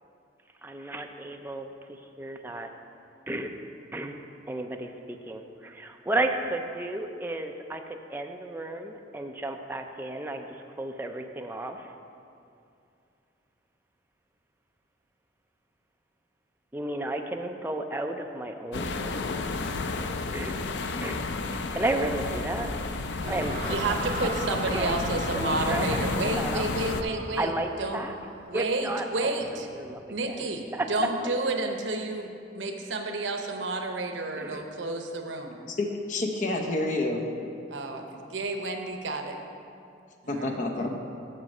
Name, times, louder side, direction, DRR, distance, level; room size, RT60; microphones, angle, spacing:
voice 1, 0.6-2.7 3.3-3.5 3.9-4.2 4.5-11.9 16.7-19.3 20.3-20.5 21.0-21.2 21.7-22.7 23.3-25.0 25.3-26.7 27.4-28.2 28.5-30.5 30.7-31.1 34.3-34.6, right 2 dB, 10° right, 4 dB, 0.4 m, -33 dB
sound 1, 18.7-27.0, left 3 dB, 70° left, 0.4 m, -31 dB
sound 2, 23.2-30.4, right 2 dB, 60° right, 1.2 m, -40 dB
voice 2, 23.7-27.5 27.8-28.0 28.5-29.7 30.1-35.6 37.7-38.0 38.3-39.4 40.2-40.9, right 2 dB, 90° right, 4 dB, 0.8 m, -31 dB
voice 3, 35.7-37.2 40.3-41.0, left 2 dB, 45° left, 2 dB, 0.8 m, -29 dB
7.6 x 6.6 x 5.4 m, 2.5 s
head